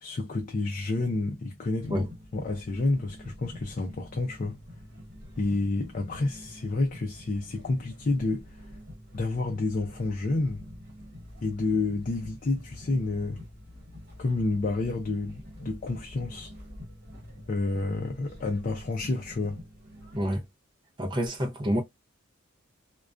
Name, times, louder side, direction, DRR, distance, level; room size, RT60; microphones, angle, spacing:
voice 1, 0.0-2.1 2.3-4.6 5.4-8.4 9.1-10.6 11.4-13.4 14.2-16.5 17.5-19.6, left 2 dB, 40° left, 0.4 m, -29 dB
viking musicians, 1.8-20.3, left 1 dB, 45° right, 1.1 m, -46 dB
voice 2, 21.0-21.8, equal, 25° right, 0.5 m, -28 dB
2.4 x 2.2 x 2.3 m
head